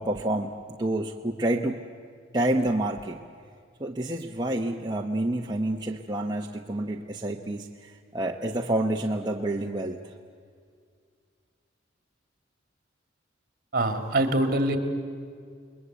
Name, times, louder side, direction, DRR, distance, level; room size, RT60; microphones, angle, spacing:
voice 1, 0.0-1.8 2.3-3.2 3.8-10.0, right 1 dB, 20° right, 0 dB, 1.0 m, -28 dB
voice 2, 13.7-14.8, right 1 dB, 50° right, 7 dB, 2.6 m, -24 dB
29.5 x 21.0 x 8.2 m, 2.1 s
head